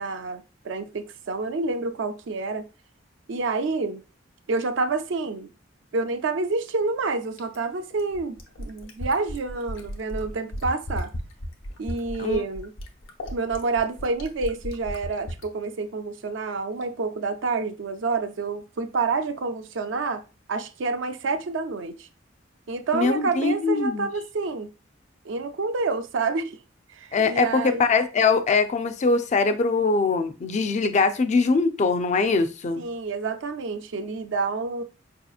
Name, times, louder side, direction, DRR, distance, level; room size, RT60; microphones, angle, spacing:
voice 1, 0.0-2.7 3.3-4.0 4.5-5.5 5.9-11.1 11.8-12.7 13.3-20.2 20.5-22.1 22.7-24.7 25.2-26.6 26.9-27.9 32.8-34.8, right 3 dB, 70° right, 0.4 m, -28 dB
Fill (with liquid), 7.4-15.5 16.8-16.9, equal, 90° left, 0.8 m, -35 dB
voice 2, 22.9-24.1 27.1-32.8, left 4 dB, 40° left, 0.4 m, -22 dB
4.8 x 2.8 x 2.3 m
head